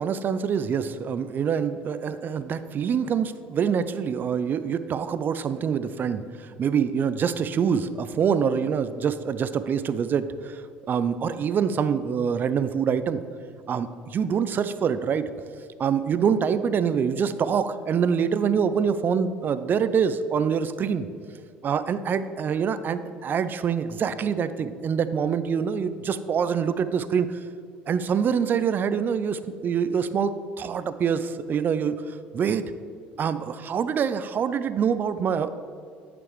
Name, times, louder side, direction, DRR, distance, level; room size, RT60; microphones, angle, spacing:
voice 1, 0.0-10.6 10.9-13.2 13.7-15.3 15.8-21.1 21.6-27.4 27.9-32.6 33.2-35.5, right 7 dB, 40° right, 13 dB, 0.4 m, -25 dB
8.7 x 6.9 x 3.2 m, 2.3 s
hypercardioid pair, 70°, 5 cm